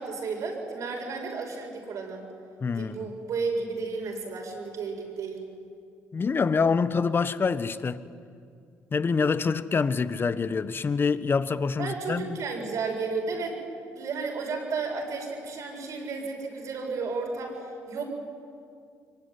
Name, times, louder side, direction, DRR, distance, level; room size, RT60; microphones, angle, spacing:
voice 1, 0.0-2.3 2.7-5.4 11.8-13.6 13.9-18.1, right 4 dB, 65° right, 7.7 m, -33 dB
voice 2, 2.6-3.1 6.1-8.0 8.9-12.3, left 5 dB, 40° left, 1.3 m, -26 dB
24.0 x 22.5 x 9.8 m
supercardioid pair, 60°, 6 cm